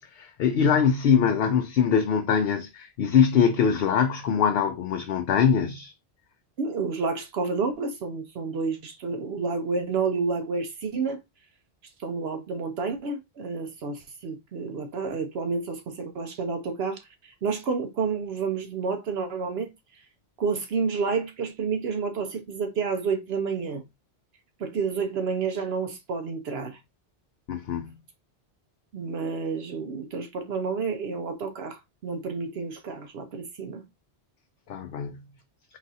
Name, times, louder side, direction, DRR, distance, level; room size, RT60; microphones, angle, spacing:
voice 1, 0.1-5.9 27.5-27.9 34.7-35.2, left 7 dB, 70° left, 0.8 m, -23 dB
voice 2, 6.6-11.2 12.0-19.7 20.4-23.8 24.6-26.8 28.9-33.8, right 4 dB, 70° right, 0.9 m, -30 dB
4.1 x 2.4 x 4.0 m
omnidirectional pair, 1.1 m